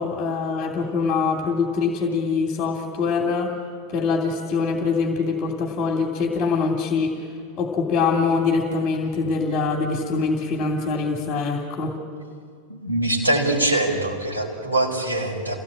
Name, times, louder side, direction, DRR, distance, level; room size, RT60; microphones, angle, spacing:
voice 1, 0.0-3.5 3.9-7.1 7.6-11.9, left 4 dB, 30° left, 2 dB, 2.6 m, -23 dB
voice 2, 12.7-15.5, right 1 dB, 80° right, -1 dB, 4.9 m, -23 dB
27.5 x 17.5 x 8.6 m, 2.2 s
figure-of-eight pair, 90°, 0 cm